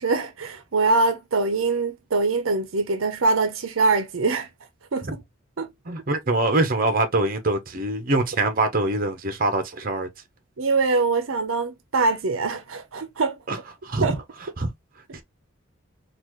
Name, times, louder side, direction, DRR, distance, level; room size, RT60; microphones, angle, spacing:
voice 1, 0.0-4.5 4.9-5.2 5.6-5.7 10.6-13.4 14.0-14.2, right 3 dB, 85° right, 0.7 m, -23 dB
voice 2, 5.9-10.1 13.5-13.6 13.8-14.2 14.6-14.7 15.1-15.2, right 2 dB, 45° right, 0.9 m, -24 dB
4.0 x 2.5 x 3.0 m
head